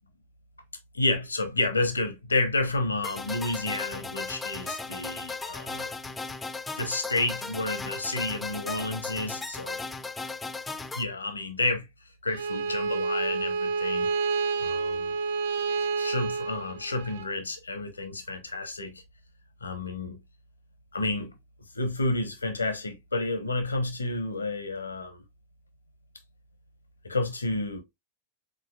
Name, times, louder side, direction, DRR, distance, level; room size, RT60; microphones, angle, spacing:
voice 1, 0.9-5.9 6.8-9.8 10.9-11.9 12.2-14.1 14.6-15.2 15.8-19.0 19.6-20.2 20.9-21.3 21.7-25.2 27.0-27.8, left 2 dB, 75° left, 0.8 m, -30 dB
sound 1, 3.0-11.0, left 3 dB, 10° left, 0.4 m, -36 dB
Bowed string instrument, 12.3-17.3, right 4 dB, 55° right, 0.4 m, -29 dB
4.8 x 3.8 x 2.3 m
figure-of-eight pair, 90°, 0 cm